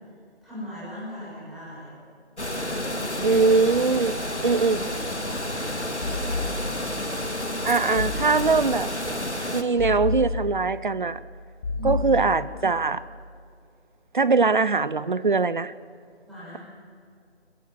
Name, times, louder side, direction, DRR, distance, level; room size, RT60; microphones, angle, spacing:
voice 1, 0.4-1.9 2.4-3.4 4.2-4.5 5.1-6.1 6.5-7.0 11.7-12.1 16.3-16.6, left 1 dB, ahead, -12 dB, 6.0 m, -39 dB
sound 1, 2.4-9.6, left 1 dB, 90° left, 2.2 m, -30 dB
voice 2, 3.2-4.2 4.4-4.8 7.6-8.9 9.5-11.2 11.8-13.0 14.1-15.7, right 4 dB, 45° right, 17 dB, 0.7 m, -22 dB
sound 2, 6.0-7.0 8.0-8.9 9.8-10.9 11.6-12.7, left 3 dB, 25° left, 6.9 m, -31 dB
22.0 x 20.5 x 7.2 m, 2.3 s
figure-of-eight pair, 160°, 33 cm